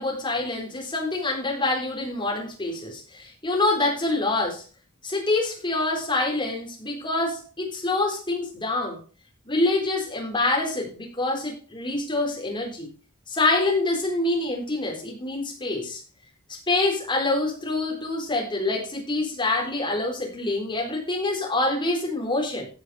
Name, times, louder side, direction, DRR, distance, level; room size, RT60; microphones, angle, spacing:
voice 1, 0.0-4.6 5.0-9.0 9.5-12.9 13.3-16.0 16.5-22.7, left 2 dB, 20° left, 0 dB, 3.9 m, -26 dB
15.5 x 5.7 x 4.8 m, 0.37 s
head